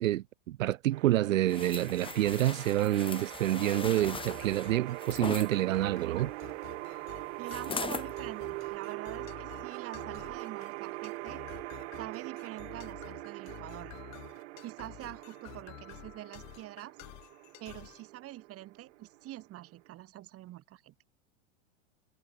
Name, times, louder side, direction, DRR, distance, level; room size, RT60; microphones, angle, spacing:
voice 1, 0.0-6.3, right 14 dB, 90° right, 0.8 m, -28 dB
sound 1, 0.9-19.9, right 21 dB, 60° right, 1.3 m, -43 dB
sound 2, 1.5-5.5 7.5-8.1 8.6-8.8, left 5 dB, 15° left, 2.6 m, -40 dB
sound 3, 4.0-18.0, left 22 dB, 45° left, 3.2 m, -51 dB
voice 2, 7.4-11.4 12.0-13.9 14.6-17.0 17.6-20.9, right 15 dB, 35° right, 4.5 m, -45 dB
hypercardioid pair, 125°, 38 cm